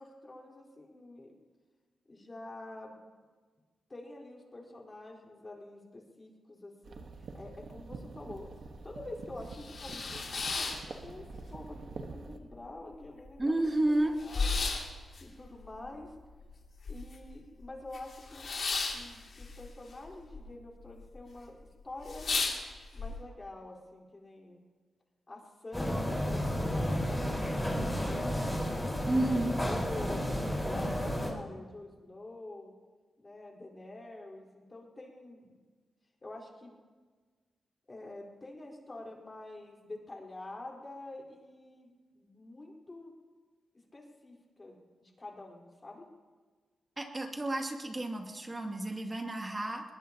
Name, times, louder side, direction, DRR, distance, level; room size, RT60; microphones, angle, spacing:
voice 1, 0.0-1.4 2.1-3.0 3.9-8.5 8.8-13.7 14.2-14.5 15.2-16.1 16.9-18.4 18.9-21.6 21.8-22.3 22.9-24.6 25.3-28.6 29.1-30.3 30.7-32.7 33.2-35.5 36.2-36.7 37.9-43.2 43.9-46.1, left 2 dB, 30° left, -2 dB, 4.5 m, -47 dB
sound 1, 6.8-12.4, right 4 dB, 75° right, 1.5 m, -46 dB
sound 2, 8.3-8.4 8.8-8.9 9.3-11.5 11.8-12.6 12.9-13.0 13.2-17.3 17.6-20.4 20.7-21.2 21.6-21.7 22.0-23.1, left 4 dB, 60° left, 2.8 m, -35 dB
voice 2, 13.4-14.1 29.1-29.5 47.0-49.8, right 1 dB, 25° right, 2 dB, 2.6 m, -31 dB
sound 3, 25.7-31.3, equal, 10° left, 5.0 m, -32 dB
21.5 x 20.5 x 3.0 m, 1.4 s
cardioid pair, 70°, 0 cm